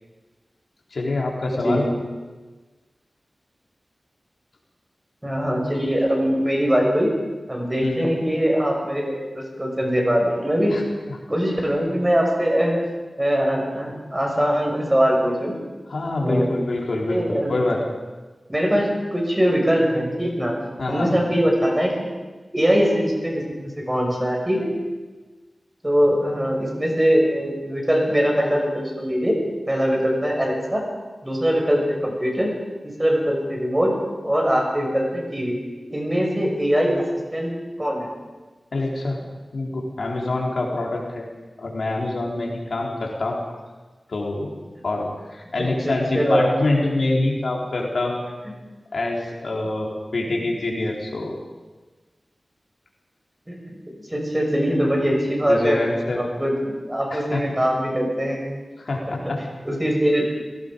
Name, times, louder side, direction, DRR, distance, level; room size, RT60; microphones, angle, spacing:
voice 1, 0.9-1.8 7.8-8.1 10.7-10.8 11.1-11.2 15.9-17.2 17.5-17.8 20.8-21.1 36.2-36.4 38.7-39.2 39.5-41.3 41.6-43.4 44.1-44.5 44.8-48.2 48.9-51.4 55.5-56.2 57.1-57.4 58.8-59.4, left 2 dB, 80° left, -1 dB, 3.8 m, -25 dB
voice 2, 1.5-1.9 5.2-7.1 7.5-10.8 11.3-12.8 13.2-15.5 16.2-16.6 17.1-17.5 18.5-20.6 20.9-22.1 22.5-23.4 23.8-24.7 25.8-29.4 29.7-30.8 31.2-32.5 32.8-33.9 34.2-35.6 35.9-37.0 37.3-38.1 45.6-46.5 53.5-53.8 54.1-55.8 56.1-58.4 59.6-60.2, equal, 15° right, 0 dB, 6.5 m, -22 dB
30.0 x 18.0 x 5.3 m, 1.3 s
wide cardioid pair, 75°, 0 cm